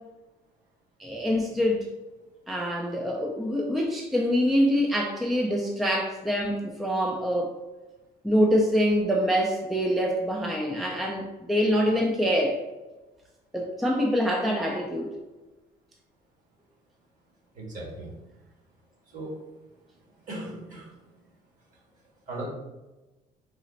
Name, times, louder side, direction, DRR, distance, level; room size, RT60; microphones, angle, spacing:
voice 1, 1.0-1.9 2.5-7.6 8.2-12.6 13.5-15.1, equal, ahead, 0 dB, 0.4 m, -25 dB
voice 2, 17.5-18.1 19.1-19.4 20.3-20.9 22.3-22.5, right 1 dB, 50° right, -3 dB, 1.5 m, -37 dB
4.0 x 2.0 x 3.9 m, 1.1 s
cardioid pair, 110°, 17 cm